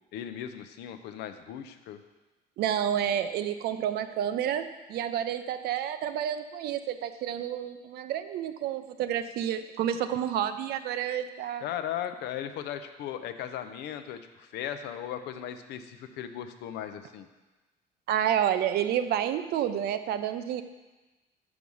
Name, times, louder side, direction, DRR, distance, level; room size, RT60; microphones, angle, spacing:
voice 1, 0.1-2.0 11.6-17.3, left 10 dB, 80° left, 9 dB, 0.6 m, -37 dB
voice 2, 2.6-11.6 18.1-20.6, right 10 dB, 70° right, 11 dB, 0.5 m, -29 dB
6.0 x 4.8 x 5.4 m, 1.2 s
cardioid pair, 110°, 17 cm